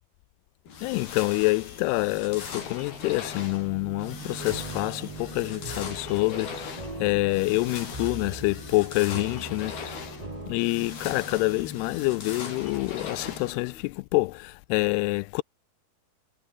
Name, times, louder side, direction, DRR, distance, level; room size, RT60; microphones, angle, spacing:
sound 1, 0.7-13.8, left 6 dB, 70° left, 6.8 m, -40 dB
voice 1, 0.8-10.2 10.5-15.4, left 23 dB, 90° left, 2.6 m, -27 dB
sound 2, 1.8-13.5, right 7 dB, 80° right, 6.1 m, -47 dB
sound 3, 4.4-10.6, right 1 dB, 10° right, 4.1 m, -41 dB
omnidirectional pair, 4.6 m